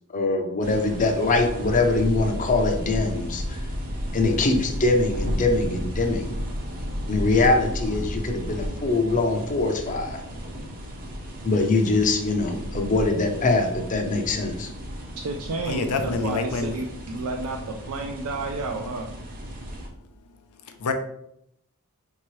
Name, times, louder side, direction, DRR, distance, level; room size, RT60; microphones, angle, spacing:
voice 1, 0.1-3.6 4.1-6.3 7.1-10.2 11.4-14.7, left 3 dB, 35° left, 4 dB, 0.6 m, -23 dB
sound 1, 0.6-19.9, equal, 40° right, 0.7 m, -33 dB
voice 2, 15.2-19.1, right 3 dB, 70° right, 2 dB, 0.4 m, -31 dB
voice 3, 15.7-16.7 20.8-20.9, left 4 dB, 80° left, 6 dB, 0.5 m, -26 dB
4.5 x 2.8 x 3.1 m, 0.76 s
head